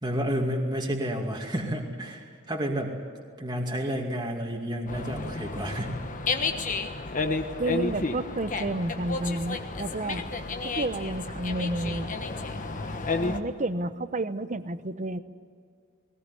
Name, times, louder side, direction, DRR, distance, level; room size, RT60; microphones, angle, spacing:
voice 1, 0.0-2.9 3.4-5.9, equal, 20° right, 0 dB, 2.4 m, -30 dB
Dog, 4.9-13.4, left 3 dB, 35° left, 1.4 m, -31 dB
voice 2, 7.6-10.2 10.6-12.1 13.2-15.2, right 2 dB, 35° right, 12 dB, 0.9 m, -31 dB
20.5 x 19.0 x 9.8 m, 2.2 s
head